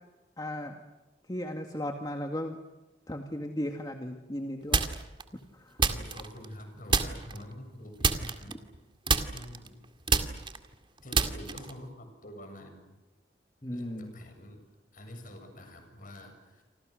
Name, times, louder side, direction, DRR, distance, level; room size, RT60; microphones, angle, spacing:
voice 1, 0.4-0.8 1.3-2.6 3.1-4.8 5.6-5.8 13.6-14.1, left 1 dB, 25° left, 4 dB, 2.0 m, -36 dB
sound 1, 4.7-5.2 5.8-6.6 6.9-7.4 8.0-8.8 9.1-11.8, right 4 dB, 30° right, 2.2 m, -28 dB
voice 2, 5.8-8.6 9.3-9.8 11.0-13.0 13.7-14.6 14.9-16.6, left 1 dB, 50° left, 5 dB, 7.6 m, -46 dB
29.5 x 26.0 x 6.5 m, 1.1 s
head